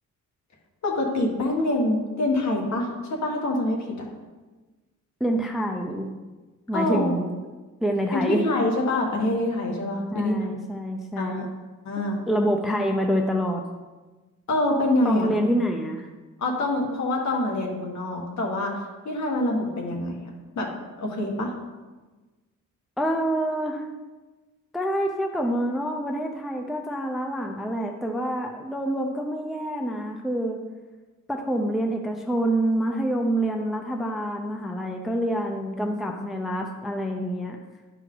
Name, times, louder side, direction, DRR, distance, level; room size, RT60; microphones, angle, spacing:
voice 1, 0.8-4.1 6.7-7.1 8.1-10.3 11.2-11.5 11.8-12.2 14.5-15.3 16.4-20.1 20.5-21.5, left 1 dB, 60° left, 0 dB, 1.7 m, -25 dB
voice 2, 5.2-6.0 6.7-7.3 7.8-8.4 10.1-11.5 12.3-13.6 15.0-16.1 23.0-23.9 24.7-30.6 31.3-37.6, right 1 dB, ahead, 3 dB, 0.5 m, -26 dB
11.0 x 4.6 x 3.8 m, 1.2 s
wide cardioid pair, 150°, 32 cm